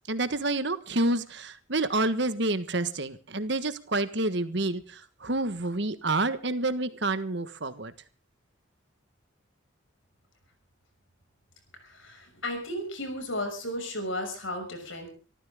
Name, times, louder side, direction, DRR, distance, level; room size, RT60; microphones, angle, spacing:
voice 1, 0.1-7.9, right 2 dB, 60° right, 11 dB, 1.4 m, -28 dB
voice 2, 11.7-15.1, left 1 dB, 75° left, 5 dB, 6.1 m, -34 dB
25.5 x 14.0 x 3.7 m, 0.36 s
head